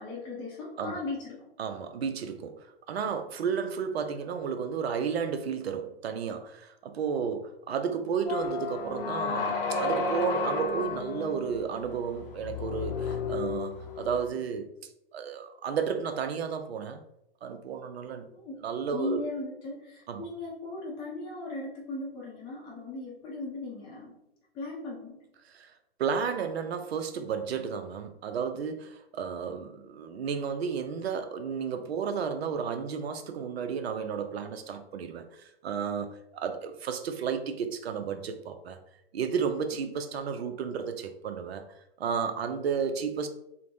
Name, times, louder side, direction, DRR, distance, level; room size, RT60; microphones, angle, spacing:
voice 1, 0.0-1.5 18.3-18.6 18.9-24.2 24.5-25.2 39.7-40.0, left 2 dB, 15° left, -4 dB, 0.5 m, -37 dB
voice 2, 1.6-14.7 15.1-17.0 17.4-18.2 18.6-19.2 20.1-20.2 25.5-25.7 26.0-38.8 39.1-41.6 42.0-43.3, right 6 dB, 85° right, 7 dB, 0.5 m, -32 dB
sound 1, 8.3-14.3, left 4 dB, 60° left, 0.6 m, -32 dB
3.2 x 2.1 x 2.6 m, 0.82 s
hypercardioid pair, 125°, 31 cm